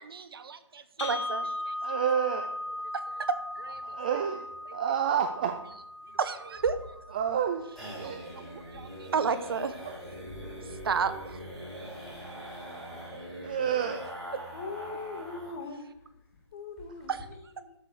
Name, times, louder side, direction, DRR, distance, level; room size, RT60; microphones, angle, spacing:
voice 1, 0.0-1.7 2.9-3.9 6.1-7.0 8.0-9.8 10.6-11.4 14.3-14.4 17.1-17.2, right 5 dB, 50° right, 12 dB, 1.0 m, -32 dB
sound 1, 1.0-9.0, left 1 dB, 75° left, 3.5 m, -39 dB
voice 2, 1.8-2.6 3.8-4.5 4.7-5.6 7.1-8.6 13.4-14.1, right 8 dB, 15° right, 7 dB, 0.4 m, -30 dB
sound 2, 6.6-15.7 15.9-16.0 16.4-16.5 16.8-17.2, equal, ahead, 4.6 m, -42 dB
voice 3, 14.5-16.1 16.5-17.7, left 3 dB, 35° left, 4 dB, 1.9 m, -41 dB
12.5 x 6.2 x 6.6 m, 0.85 s
hypercardioid pair, 165°, 16 cm